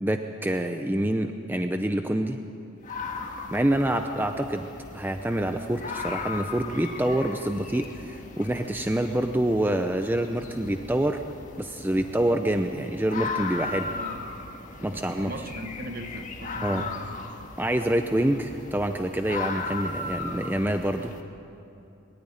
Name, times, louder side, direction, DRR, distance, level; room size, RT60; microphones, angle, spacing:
voice 1, 0.0-2.4 3.5-4.7 4.9-11.2 11.6-13.9 14.8-15.3 16.6-16.9 17.6-21.1, right 1 dB, 10° right, 6 dB, 0.6 m, -26 dB
sound 1, 2.8-21.2, left 3 dB, 40° left, 1.7 m, -37 dB
voice 2, 13.9-14.3 14.9-17.1, right 1 dB, 45° right, 7 dB, 1.3 m, -39 dB
23.0 x 13.5 x 9.9 m, 2.7 s
head